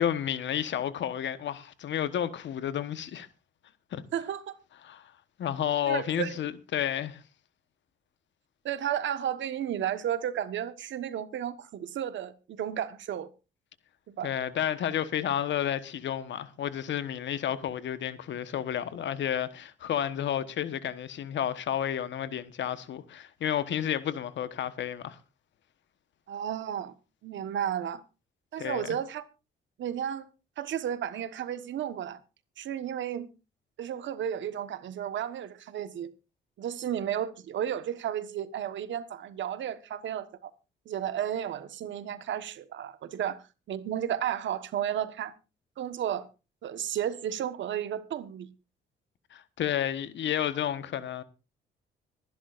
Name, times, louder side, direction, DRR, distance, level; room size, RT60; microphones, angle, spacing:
voice 1, 0.0-3.3 3.9-4.0 4.8-5.1 5.4-7.2 14.2-25.2 28.6-29.0 49.3-51.2, left 10 dB, 65° left, 1.2 m, -31 dB
voice 2, 4.1-4.6 5.9-6.4 8.6-13.3 14.2-14.3 26.3-26.9 27.2-28.0 28.5-29.2 29.8-30.3 30.6-32.2 32.6-33.3 33.8-36.1 36.6-40.5 40.8-45.3 45.8-46.3 46.6-48.5, right 10 dB, 70° right, 1.3 m, -33 dB
25.5 x 11.0 x 2.5 m
cardioid pair, 90°, 20 cm